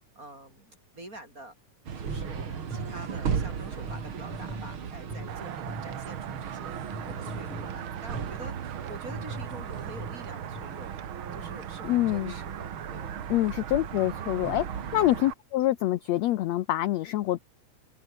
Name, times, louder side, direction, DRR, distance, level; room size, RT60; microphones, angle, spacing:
voice 1, 0.2-1.5 2.0-10.9 11.3-13.2, right 1 dB, 25° right, 7.5 m, -46 dB
sound 1, 1.9-15.2, right 7 dB, 45° right, 2.6 m, -37 dB
sound 2, 2.1-6.1 6.9-8.5 9.1-10.6, equal, ahead, 4.1 m, -42 dB
sound 3, 5.3-15.3, right 11 dB, 75° right, 1.2 m, -41 dB
voice 2, 11.8-12.3 13.3-17.4, left 15 dB, 70° left, 1.7 m, -26 dB
omnidirectional pair, 3.7 m